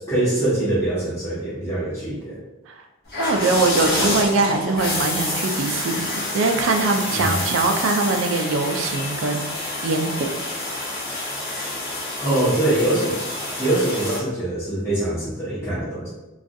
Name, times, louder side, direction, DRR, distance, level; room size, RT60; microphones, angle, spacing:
voice 1, 0.1-2.4 7.1-7.4 12.2-13.2 13.6-16.1, right 1 dB, 15° left, -12 dB, 0.8 m, -23 dB
sound 1, 3.1-14.2, left 2 dB, 50° left, 0.9 m, -28 dB
voice 2, 3.2-10.3, right 3 dB, 75° right, 4 dB, 0.3 m, -22 dB
2.4 x 2.2 x 2.6 m, 1.1 s
head